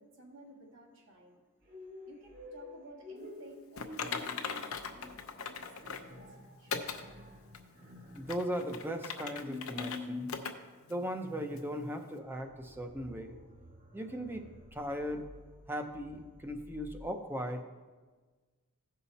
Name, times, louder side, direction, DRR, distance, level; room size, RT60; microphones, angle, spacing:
voice 1, 0.0-1.4 2.1-7.0, equal, 60° right, -1 dB, 1.8 m, -54 dB
sound 1, 1.6-17.0, left 2 dB, 40° right, 1.7 m, -49 dB
Typing, 3.8-6.1 6.7-7.0 7.5-7.6 8.2-10.0 10.3-10.5 10.9-11.0 11.6-11.7, left 5 dB, 70° left, 0.7 m, -39 dB
voice 2, 8.1-10.3 10.9-13.3 13.9-14.4 14.7-15.3 15.7-17.6, equal, 10° right, 6 dB, 0.6 m, -38 dB
15.0 x 5.6 x 4.1 m, 1.4 s
head